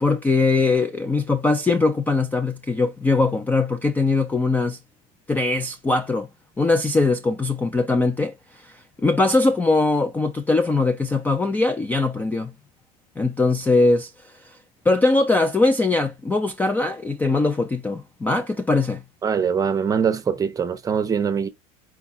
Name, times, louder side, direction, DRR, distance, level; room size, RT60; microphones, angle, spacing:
voice 1, 0.0-4.8 5.3-6.3 6.6-12.5 13.2-14.6 14.9-19.0, left 3 dB, 10° left, 0.3 m, -21 dB
voice 2, 19.2-21.5, right 6 dB, 20° right, 0.6 m, -22 dB
4.7 x 2.3 x 4.1 m
cardioid pair, 145°, 18 cm